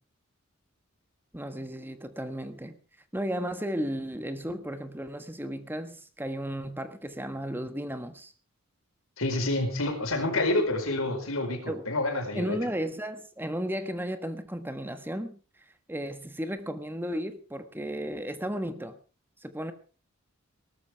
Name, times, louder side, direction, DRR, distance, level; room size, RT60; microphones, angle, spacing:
voice 1, 1.3-2.8 3.1-8.3 11.7-11.8 12.3-15.4 15.9-19.0 19.4-19.7, equal, 10° right, 1.5 m, -34 dB
voice 2, 9.2-12.6, left 2 dB, 80° left, 5.0 m, -28 dB
18.5 x 13.5 x 4.6 m
head